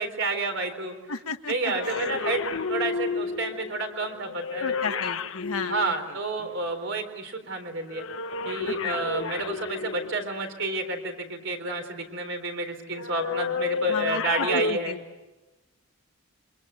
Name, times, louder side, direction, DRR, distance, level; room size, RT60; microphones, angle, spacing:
voice 1, 0.0-0.9 1.5-5.0 5.7-8.0 8.4-14.9, right 3 dB, 55° right, 6 dB, 4.1 m, -30 dB
voice 2, 1.1-2.1 4.6-6.5 8.6-9.0 13.9-15.0, left 4 dB, 90° left, 7 dB, 1.6 m, -34 dB
sound 1, 1.6-6.7 7.9-10.5 12.9-14.7, left 4 dB, 65° left, 1.0 m, -31 dB
27.5 x 25.0 x 8.2 m, 1.1 s
head